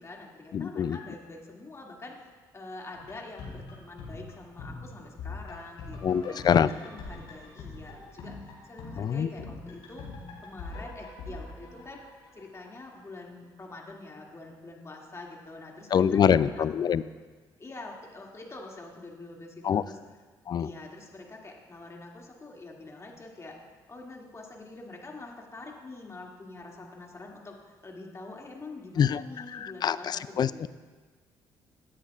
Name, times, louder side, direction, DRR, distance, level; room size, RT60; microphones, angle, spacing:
voice 1, 0.0-10.0 10.4-12.0 12.3-16.9 17.6-20.0 20.6-30.7, left 2 dB, 30° left, -1 dB, 2.4 m, -45 dB
voice 2, 0.5-1.0 6.0-6.7 9.0-9.3 15.9-17.0 19.6-19.8 20.5-20.7 29.0-30.5, left 8 dB, 50° left, 16 dB, 0.4 m, -25 dB
sound 1, 2.9-12.9 13.1-13.2, left 3 dB, 75° left, 3.6 m, -43 dB
17.0 x 9.7 x 2.5 m, 1.4 s
supercardioid pair, 60°, 9 cm